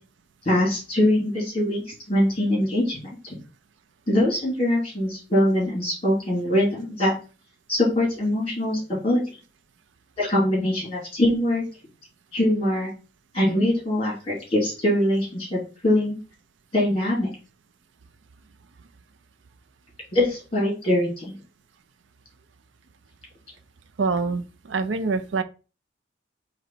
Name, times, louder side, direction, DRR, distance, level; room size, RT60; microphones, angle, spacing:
voice 1, 0.5-3.4 4.1-7.1 7.7-9.2 10.2-11.6 12.3-12.9 13.3-16.1 16.7-17.3 20.1-21.4, left 1 dB, 30° left, 2.3 m, -23 dB
voice 2, 24.0-25.4, right 4 dB, 75° right, 0.5 m, -25 dB
3.9 x 3.0 x 4.4 m
head